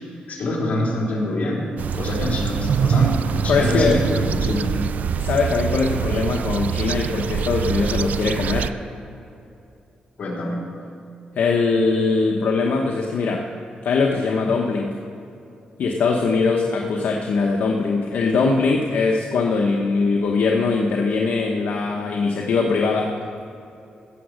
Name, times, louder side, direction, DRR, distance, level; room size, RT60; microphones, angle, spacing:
voice 1, 0.3-1.7 1.9-4.8 10.2-10.6 11.8-11.9, left 1 dB, 55° left, -4 dB, 3.6 m, -25 dB
sound 1, 1.8-8.7, right 8 dB, 65° right, 0.3 m, -24 dB
voice 2, 3.5-4.0 5.2-8.7 11.3-13.4 13.8-15.0 15.8-23.1, left 4 dB, 75° left, 1 dB, 1.0 m, -21 dB
16.0 x 7.3 x 6.5 m, 2.7 s
cardioid pair, 115°, 3 cm